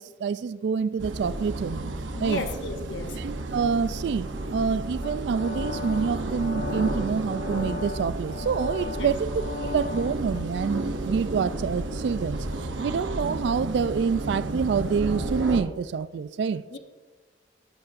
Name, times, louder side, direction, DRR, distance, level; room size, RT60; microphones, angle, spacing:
voice 1, 0.0-1.9 2.2-2.4 3.2-12.4 12.8-16.6, right 6 dB, 65° right, 0.3 m, -27 dB
sound 1, 1.0-15.6, right 2 dB, 85° right, 0.8 m, -32 dB
voice 2, 2.1-3.2 9.0-9.1 16.7-16.8, left 3 dB, 75° left, 0.8 m, -33 dB
sound 2, 5.0-10.4, left 5 dB, 40° left, 0.5 m, -38 dB
11.5 x 10.5 x 2.5 m
head